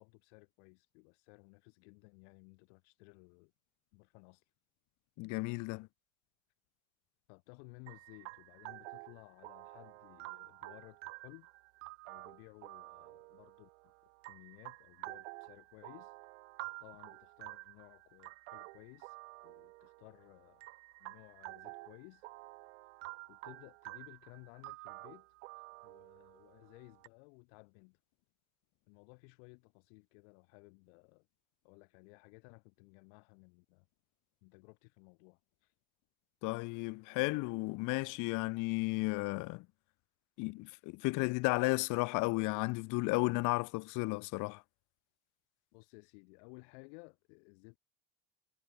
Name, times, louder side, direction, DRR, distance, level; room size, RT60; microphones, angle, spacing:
voice 1, 0.0-3.5 3.9-4.5 7.3-11.5 12.0-13.9 14.3-16.2 16.8-20.6 21.0-22.3 23.3-25.3 25.6-28.0 28.9-31.3 31.6-33.9 34.4-35.7 45.7-47.8, left 37 dB, 75° left, 4.0 m, -58 dB
voice 2, 5.2-5.9 36.4-39.7 40.4-44.6, left 25 dB, 60° left, 0.5 m, -33 dB
sound 1, 7.9-27.1, right 24 dB, 80° right, 1.6 m, -50 dB
hypercardioid pair, 80°, 35 cm